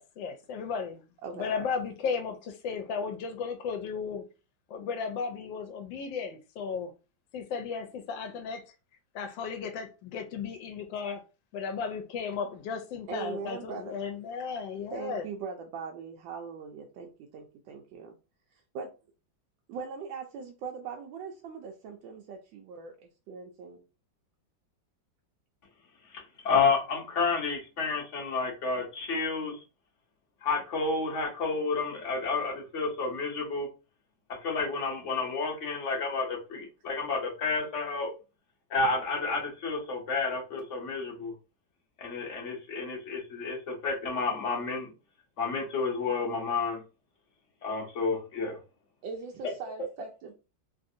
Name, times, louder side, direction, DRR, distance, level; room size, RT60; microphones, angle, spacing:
voice 1, 0.0-1.0 1.3-4.2 4.7-6.9 7.3-8.6 9.1-11.2 11.5-15.2, left 5 dB, 80° left, 1.3 m, -35 dB
voice 2, 1.2-1.5 13.1-14.0 14.9-18.1 18.5-18.9 19.7-23.8 49.0-50.3, right 5 dB, 85° right, 1.3 m, -40 dB
voice 3, 26.1-29.6 30.4-33.7 34.3-38.1 38.7-41.3 42.0-44.9 45.4-46.8 47.6-48.6, left 4 dB, 55° left, 0.9 m, -30 dB
3.3 x 2.5 x 2.6 m
omnidirectional pair, 2.0 m